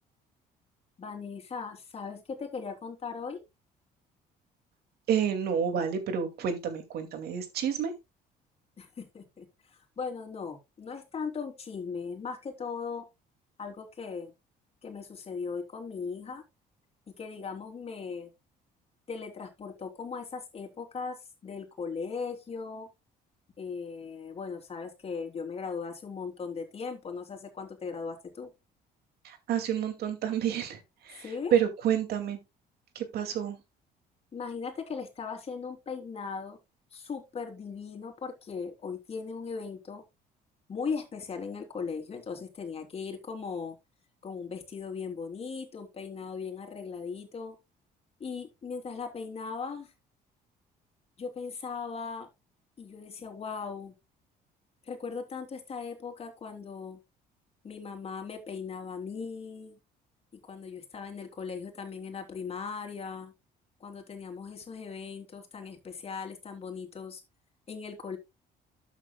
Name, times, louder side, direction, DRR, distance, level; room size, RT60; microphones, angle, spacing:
voice 1, 1.0-3.4 8.8-13.0 13.6-14.3 14.8-16.4 17.2-18.3 19.1-22.9 23.6-28.5 31.2-31.5 34.3-36.6 36.9-40.0 40.7-43.7 44.2-47.6 48.2-49.9 51.2-52.3 52.8-53.9 54.8-57.0 57.6-59.8 60.5-63.3 63.8-67.2 67.7-68.2, left 5 dB, 35° left, 3.4 m, -38 dB
voice 2, 5.1-7.9 29.2-30.8 31.0-31.2 31.5-32.4 32.9-33.6, right 8 dB, 70° right, 2.5 m, -29 dB
12.5 x 8.2 x 2.3 m
cardioid pair, 110°, 17 cm